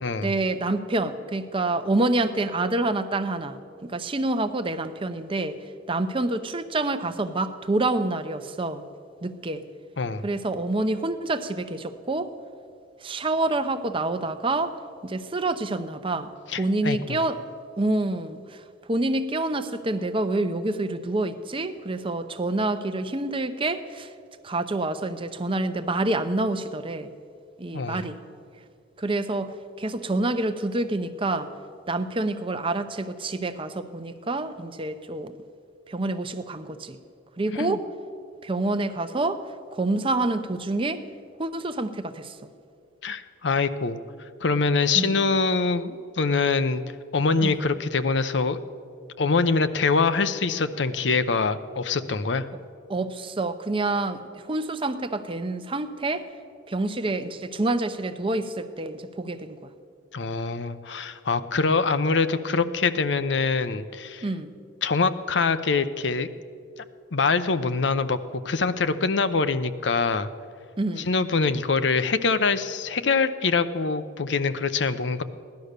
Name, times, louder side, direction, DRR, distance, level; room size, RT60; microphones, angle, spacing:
voice 1, 0.2-5.6 5.9-8.8 9.2-9.6 10.2-12.3 13.0-14.8 15.0-17.5 17.8-18.6 18.9-24.1 24.4-27.1 27.6-28.2 29.0-31.5 31.9-35.3 35.9-37.0 37.4-37.8 38.4-39.5 39.7-41.0 41.4-42.4 44.9-45.2 47.4-47.6 52.9-56.3 56.7-59.7 64.2-64.5 70.8-71.1, right 2 dB, 30° right, 10 dB, 0.7 m, -27 dB
voice 2, 16.5-17.2 27.7-28.1 37.6-37.8 43.0-44.0 44.4-46.8 47.1-48.6 49.2-52.5 60.1-64.2 64.8-66.3 67.1-68.2 68.4-70.3 71.0-75.2, left 4 dB, 70° left, 11 dB, 0.7 m, -24 dB
17.0 x 11.5 x 6.6 m, 2.4 s
head